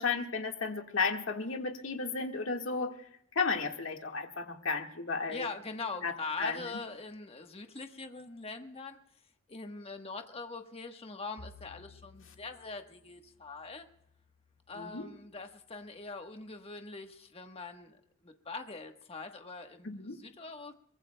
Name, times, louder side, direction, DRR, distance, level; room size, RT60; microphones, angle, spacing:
voice 1, 0.0-2.9 3.3-5.5 6.0-6.6 14.7-15.1 19.8-20.2, left 4 dB, 75° left, 3 dB, 1.7 m, -33 dB
voice 2, 5.3-9.0 9.5-13.9 14.7-18.0 18.2-20.7, left 4 dB, 30° left, 5 dB, 1.3 m, -42 dB
Bowed string instrument, 11.4-15.8, left 3 dB, 45° left, 1.5 m, -58 dB
23.0 x 23.0 x 2.3 m, 0.72 s
head